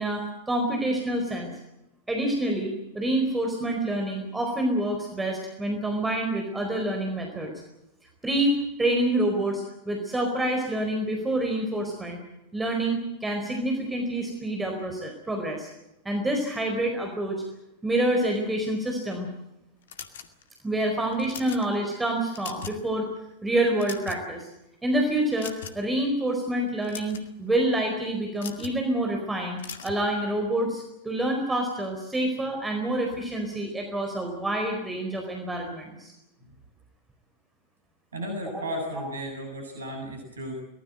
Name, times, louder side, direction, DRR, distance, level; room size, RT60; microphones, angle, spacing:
voice 1, 0.0-1.5 2.1-7.5 8.2-12.2 12.5-15.7 16.0-17.4 17.8-19.3 20.6-23.1 23.4-24.5 24.8-36.1 38.5-38.6, right 1 dB, 10° right, 2 dB, 4.5 m, -27 dB
sound 1, 19.9-20.6 21.1-21.6 22.2-22.9 23.2-23.3 23.7-24.4 25.4-25.9 26.7-27.3 28.4-28.8 29.6-30.0, left 8 dB, 60° left, 2.3 m, -40 dB
voice 2, 38.1-40.5, equal, 70° right, 3 dB, 7.9 m, -34 dB
24.0 x 19.5 x 7.8 m, 0.91 s
figure-of-eight pair, 90°, 0 cm